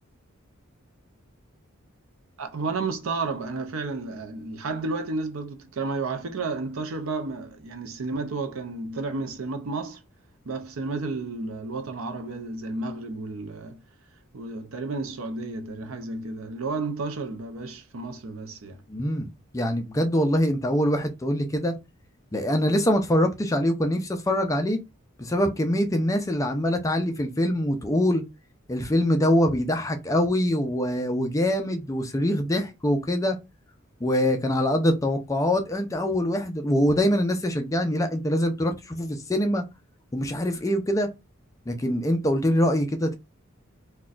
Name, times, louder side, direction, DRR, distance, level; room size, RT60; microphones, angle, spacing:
voice 1, 2.4-10.0 10.5-13.8 14.3-18.8, right 3 dB, 70° right, 0.5 m, -32 dB
voice 2, 18.9-21.7 22.3-24.8 25.2-28.2 28.7-33.4 34.0-39.6 40.1-41.1 41.7-43.2, equal, 15° left, 0.4 m, -24 dB
3.9 x 2.2 x 2.4 m
head